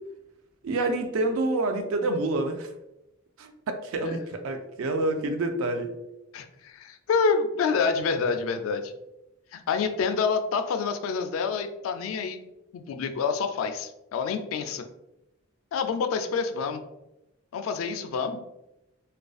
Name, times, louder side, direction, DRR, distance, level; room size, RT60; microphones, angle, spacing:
voice 1, 0.6-2.7 3.4-5.9, right 2 dB, 80° right, 6 dB, 0.4 m, -27 dB
voice 2, 6.3-8.9 9.5-12.4 12.7-14.8 15.7-16.8 17.5-18.4, left 5 dB, 80° left, 7 dB, 0.3 m, -27 dB
2.5 x 2.3 x 2.3 m, 0.91 s
head